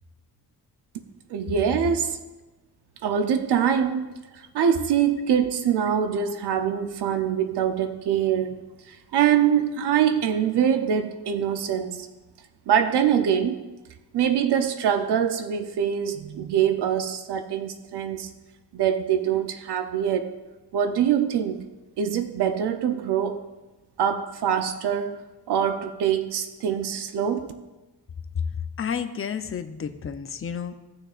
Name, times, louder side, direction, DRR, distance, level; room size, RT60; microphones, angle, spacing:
voice 1, 1.3-2.2 3.0-4.1 4.3-8.6 8.9-12.1 12.7-13.6 14.1-18.3 18.7-20.3 20.7-21.6 22.0-23.4 24.0-25.2 25.5-27.5, right 8 dB, 85° right, 8 dB, 0.7 m, -24 dB
voice 2, 28.5-30.7, left 7 dB, 35° left, 8 dB, 0.6 m, -31 dB
17.0 x 6.4 x 2.5 m, 1.2 s
wide cardioid pair, 140°, 39 cm